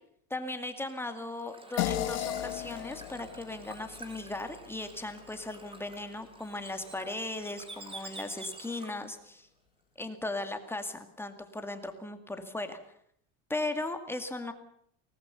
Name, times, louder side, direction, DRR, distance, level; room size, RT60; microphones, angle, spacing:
voice 1, 0.3-9.5 10.0-12.8 13.5-14.5, left 2 dB, 5° left, 7 dB, 2.2 m, -37 dB
Bird / Water, 0.7-9.2, right 2 dB, 15° right, 3.1 m, -49 dB
sound 1, 1.8-6.5, left 13 dB, 80° left, 1.7 m, -37 dB
24.0 x 19.0 x 7.0 m, 0.68 s
supercardioid pair, 140°, 38 cm